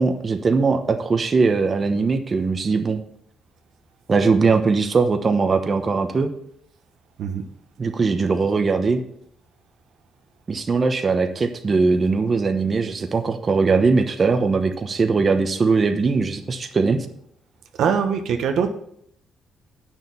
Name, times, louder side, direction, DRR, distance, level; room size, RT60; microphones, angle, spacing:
voice 1, 0.0-3.0 4.1-6.3 7.8-9.0 10.5-17.1, right 4 dB, 35° right, 6 dB, 1.0 m, -20 dB
voice 2, 17.8-18.7, right 7 dB, 75° right, 6 dB, 1.1 m, -22 dB
9.0 x 6.7 x 5.9 m, 0.71 s
cardioid pair, 90°, 0 cm